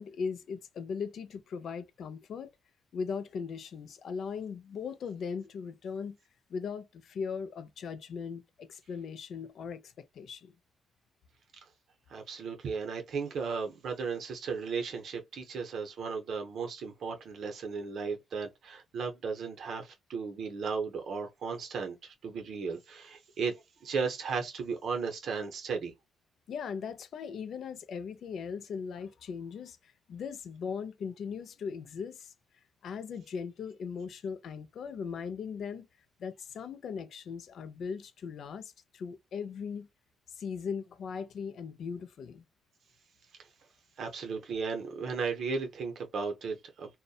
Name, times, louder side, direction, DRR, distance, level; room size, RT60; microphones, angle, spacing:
voice 1, 0.0-2.5 2.9-6.2 6.5-10.5 26.5-32.3 32.8-35.9 36.2-39.9 40.3-42.4, left 6 dB, 65° left, 0.4 m, -39 dB
voice 2, 12.1-25.9 44.0-46.9, right 5 dB, 65° right, 0.6 m, -35 dB
2.6 x 2.1 x 2.3 m
cardioid pair, 90°, 0 cm